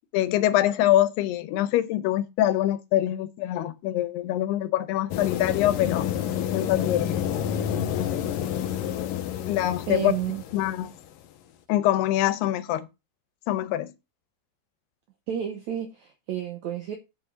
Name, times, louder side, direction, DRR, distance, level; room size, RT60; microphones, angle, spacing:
voice 1, 0.1-6.1 6.5-7.3 7.7-8.2 9.5-10.1 10.5-10.9 11.7-12.9 13.5-13.9, left 13 dB, 90° left, 2.9 m, -24 dB
sound 1, 5.1-11.1, left 9 dB, 70° left, 2.3 m, -29 dB
voice 2, 9.9-10.4 15.3-17.0, right 9 dB, 80° right, 1.6 m, -31 dB
9.2 x 7.2 x 3.7 m
omnidirectional pair, 4.5 m